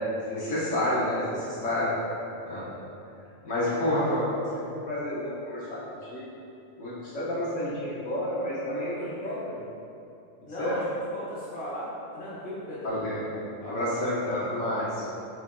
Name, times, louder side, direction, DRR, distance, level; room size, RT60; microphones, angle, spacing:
voice 1, 0.3-1.9 2.4-2.7 3.4-5.8 6.1-6.2 6.8-9.4 10.6-10.8 12.8-13.2 13.7-15.1, left 1 dB, 70° left, -9 dB, 1.0 m, -29 dB
voice 2, 8.9-9.5 10.5-10.8 11.1-13.0 13.6-13.9, equal, 10° left, -8 dB, 0.4 m, -38 dB
4.3 x 2.7 x 2.4 m, 2.8 s
omnidirectional pair, 1.3 m